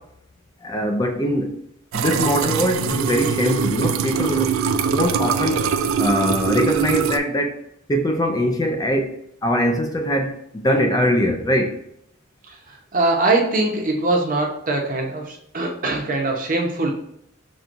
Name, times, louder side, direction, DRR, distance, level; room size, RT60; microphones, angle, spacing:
voice 1, 0.6-1.6 1.9-5.7 6.0-7.6 7.9-11.8, equal, 20° left, 3 dB, 0.4 m, -22 dB
sound 1, 1.9-7.2, right 6 dB, 80° right, 0.3 m, -22 dB
voice 2, 12.9-16.9, right 2 dB, 45° right, 1 dB, 0.8 m, -22 dB
5.9 x 2.3 x 2.5 m, 0.73 s
head